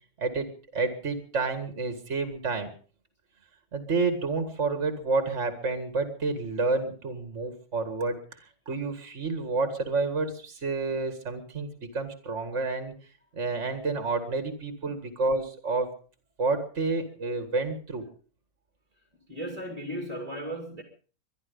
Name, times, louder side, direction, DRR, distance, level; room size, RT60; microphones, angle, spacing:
voice 1, 0.2-2.7 3.7-12.9 13.3-15.9 16.4-18.1, right 3 dB, 50° right, 8 dB, 2.3 m, -29 dB
voice 2, 19.3-20.8, right 1 dB, 25° right, 4 dB, 2.7 m, -36 dB
23.5 x 11.5 x 5.4 m, 0.41 s
omnidirectional pair, 1.5 m